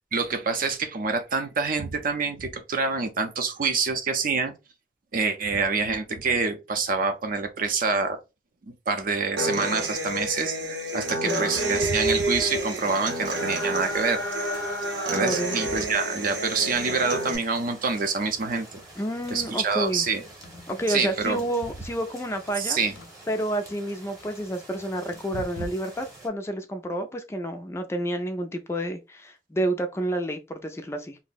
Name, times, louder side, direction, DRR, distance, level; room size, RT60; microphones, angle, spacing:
voice 1, 0.1-4.5 5.1-8.2 8.7-14.2 15.1-18.8 19.3-20.2 20.9-21.4 22.6-22.9 25.3-25.7, right 4 dB, 50° right, 0.5 m, -26 dB
Human voice / Acoustic guitar, 9.4-17.4, right 1 dB, 80° right, 0.8 m, -29 dB
sound 1, 10.1-10.3 11.2-11.4 12.1-12.6 13.3-13.4 16.7-17.1 19.3-19.6 20.0-20.1 20.3-21.4 23.0-23.1 25.1-25.5, left 2 dB, 65° left, 0.6 m, -49 dB
sound 2, 11.3-26.3, right 1 dB, 20° right, 0.9 m, -48 dB
voice 2, 15.1-15.6 19.0-20.1 20.7-22.8 23.3-31.2, right 1 dB, 15° left, 0.3 m, -29 dB
2.6 x 2.0 x 3.9 m
head